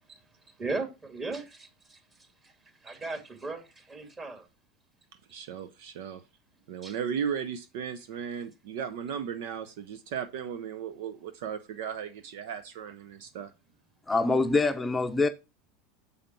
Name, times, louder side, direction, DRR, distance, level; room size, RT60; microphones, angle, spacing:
voice 1, 0.1-4.5 6.8-7.0, right 3 dB, 25° right, 2.2 m, -38 dB
voice 2, 5.3-6.2 6.7-13.5, right 7 dB, 70° right, 0.7 m, -36 dB
voice 3, 14.1-15.3, left 3 dB, 15° left, 0.7 m, -24 dB
7.0 x 5.0 x 4.5 m
hypercardioid pair, 95°, 0 cm